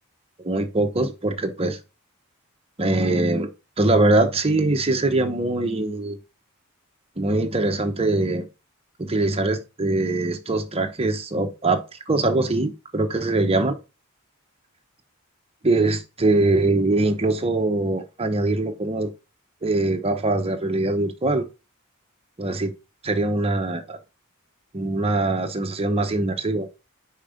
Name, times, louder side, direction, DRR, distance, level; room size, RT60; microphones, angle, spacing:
voice 1, 0.4-1.8 2.8-3.5 3.8-6.2 7.2-8.4 9.0-13.7 15.6-19.1 19.6-21.5 22.4-22.7 23.0-24.0 24.7-26.7, right 2 dB, 25° right, 1.0 m, -22 dB
5.3 x 5.2 x 5.0 m
head